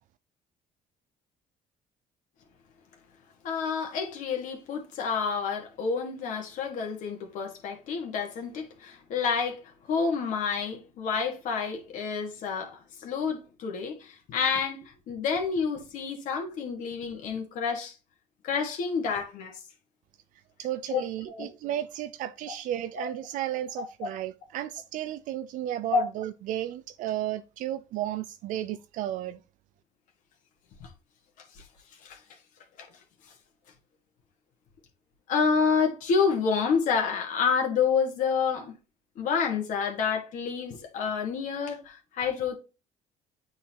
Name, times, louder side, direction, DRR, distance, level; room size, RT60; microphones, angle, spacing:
voice 1, 3.4-17.9 18.4-19.5 20.9-21.5 23.0-23.1 24.0-24.1 25.9-26.0 30.8-30.9 32.0-32.2 32.8-32.9 35.3-38.7 39.2-42.6, left 5 dB, 70° left, 1.6 m, -29 dB
voice 2, 20.6-29.4, right 12 dB, 75° right, 0.4 m, -33 dB
8.4 x 3.9 x 2.9 m
cardioid pair, 120°, 14 cm